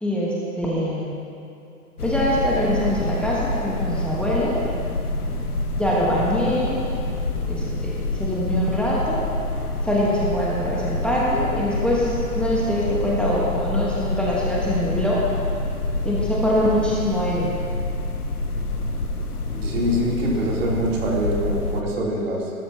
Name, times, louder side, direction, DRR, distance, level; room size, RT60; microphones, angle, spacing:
voice 1, 0.0-1.2 2.0-4.6 5.8-6.8 7.5-9.2 9.8-15.2 16.0-17.5, equal, ahead, -6 dB, 1.3 m, -23 dB
sound 1, 2.0-21.8, left 2 dB, 85° left, 1.2 m, -27 dB
voice 2, 19.5-22.5, right 1 dB, 55° right, -3 dB, 3.5 m, -24 dB
19.0 x 12.5 x 2.9 m, 2.7 s
hypercardioid pair, 125°, 44 cm